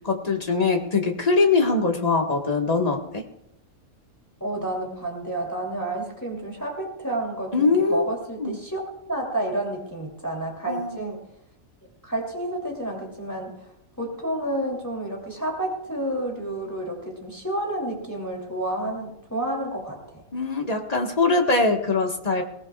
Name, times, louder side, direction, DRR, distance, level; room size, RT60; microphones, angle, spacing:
voice 1, 0.0-3.2 7.5-8.1 8.4-8.6 10.7-11.0 20.3-22.4, left 3 dB, 30° left, 2 dB, 1.6 m, -22 dB
voice 2, 4.4-8.8 9.1-11.2 12.0-13.6 14.0-20.2, right 1 dB, 10° left, -2 dB, 2.9 m, -30 dB
21.5 x 18.0 x 2.4 m, 0.82 s
omnidirectional pair, 1.5 m